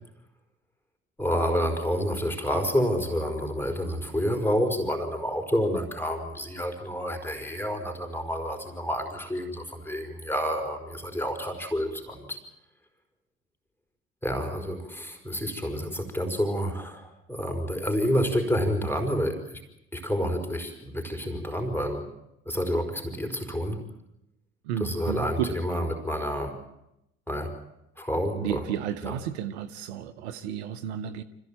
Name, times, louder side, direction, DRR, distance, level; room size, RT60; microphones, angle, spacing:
voice 1, 1.2-12.4 14.2-19.6 19.9-22.1 22.4-23.9 24.8-26.6 27.3-27.6 28.0-28.6 29.1-29.2, equal, 5° left, 4.9 m, -29 dB
voice 2, 24.6-25.9 28.3-31.2, right 9 dB, 80° right, 1.0 m, -32 dB
25.5 x 15.5 x 8.8 m
hypercardioid pair, 50°, 32 cm